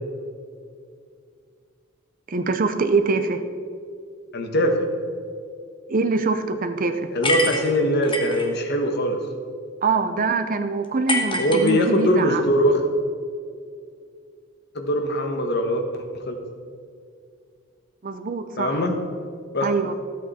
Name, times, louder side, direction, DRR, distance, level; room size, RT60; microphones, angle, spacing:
voice 1, 2.3-3.4 5.9-7.1 9.8-12.4 18.0-19.0 19.6-19.9, right 4 dB, 40° right, 8 dB, 0.6 m, -24 dB
voice 2, 4.3-4.8 7.1-9.2 11.4-12.8 14.7-16.4 18.6-18.9 19.5-19.7, equal, 50° left, 4 dB, 1.2 m, -22 dB
sound 1, 7.2-8.5 11.1-12.2, left 2 dB, 25° left, 1.2 m, -26 dB
13.5 x 8.5 x 4.3 m, 2.3 s
head